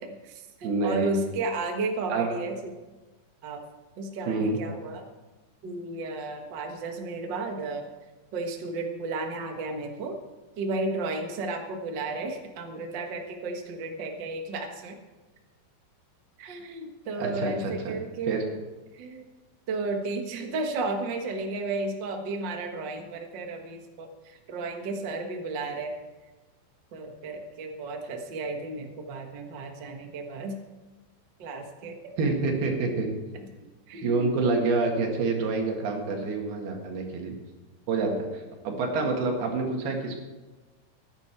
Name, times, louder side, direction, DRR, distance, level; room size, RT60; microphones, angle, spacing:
voice 1, 0.0-2.8 3.4-3.6 4.0-5.0 5.6-7.9 8.3-10.2 10.6-15.0 16.4-18.6 18.9-19.2 19.7-25.9 26.9-30.6 31.4-32.0 33.9-34.4, right 3 dB, 65° right, 3 dB, 1.1 m, -33 dB
voice 2, 0.6-1.1 2.1-2.3 4.3-4.6 17.2-17.9 18.3-18.4 32.2-33.1 34.0-37.3 37.9-40.2, right 3 dB, 85° right, 2 dB, 3.9 m, -27 dB
15.5 x 10.5 x 4.6 m, 1.2 s
omnidirectional pair, 4.4 m